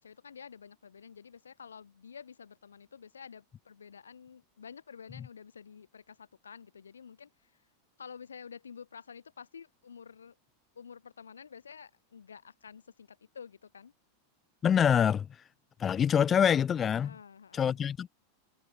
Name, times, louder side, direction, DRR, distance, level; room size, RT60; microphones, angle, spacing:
voice 1, 0.0-7.7 8.0-10.4 10.7-13.9 17.0-17.8, left 6 dB, 80° left, 2.4 m, -50 dB
voice 2, 14.6-15.3 15.8-17.1 17.5-18.1, left 8 dB, 25° left, 0.7 m, -25 dB
figure-of-eight pair, 90°, 0 cm